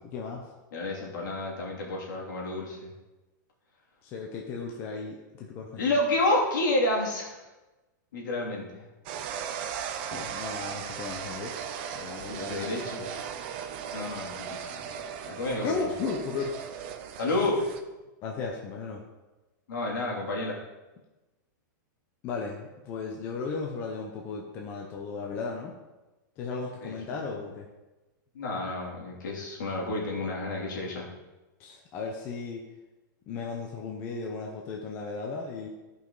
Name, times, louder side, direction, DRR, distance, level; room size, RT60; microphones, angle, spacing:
voice 1, 0.0-0.5 4.0-5.8 9.7-9.8 10.1-11.6 11.9-13.1 15.6-16.5 18.2-19.0 22.2-25.7 26.4-27.7 31.6-32.6 33.3-35.7, left 4 dB, 20° left, 0 dB, 0.7 m, -35 dB
voice 2, 0.7-2.9 5.8-7.5 8.1-8.8 12.3-13.1 13.9-14.8 15.2-15.9 17.2-17.6 19.7-20.6 26.8-26.9 28.3-31.1, left 2 dB, 70° left, -3 dB, 3.0 m, -30 dB
sound 1, 9.1-17.8, right 8 dB, 30° right, 0.5 m, -37 dB
13.5 x 5.4 x 3.9 m, 1.1 s
supercardioid pair, 180°, 11 cm